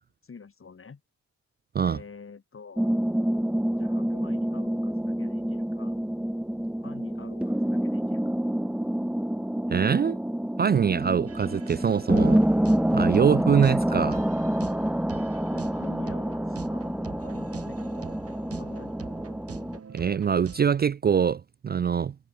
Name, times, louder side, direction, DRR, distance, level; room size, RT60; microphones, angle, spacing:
voice 1, 0.2-1.0 1.9-3.0 3.8-6.0 6.8-8.4 15.5-17.8 18.6-19.0, left 5 dB, 45° left, 7.5 m, -47 dB
sound 1, 2.8-19.8, right 1 dB, 5° right, 1.8 m, -27 dB
voice 2, 9.7-10.2 10.6-12.4 12.9-14.2 19.9-22.1, right 7 dB, 35° right, 0.4 m, -23 dB
sound 2, 11.3-20.7, right 6 dB, 55° right, 6.7 m, -44 dB
cardioid pair, 95°, 29 cm